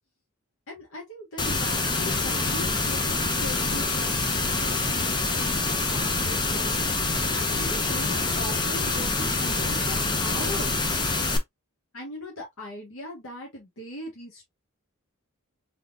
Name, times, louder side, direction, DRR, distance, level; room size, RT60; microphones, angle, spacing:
voice 1, 0.7-6.8 7.3-10.9 11.9-14.5, left 1 dB, 65° left, 1.4 m, -40 dB
sound 1, 1.4-11.4, left 3 dB, 20° left, 0.6 m, -26 dB
3.7 x 3.4 x 2.5 m
head